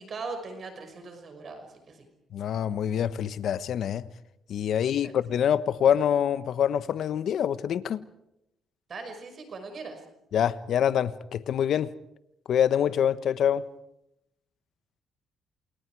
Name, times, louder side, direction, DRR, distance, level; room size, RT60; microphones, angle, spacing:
voice 1, 0.0-2.1 5.0-5.1 8.9-10.0, right 4 dB, 50° right, 5.7 m, -39 dB
voice 2, 2.3-4.1 4.5-8.1 10.3-11.9 12.5-13.7, left 9 dB, 70° left, 1.3 m, -25 dB
28.5 x 28.0 x 4.9 m
cardioid pair, 90°, 0 cm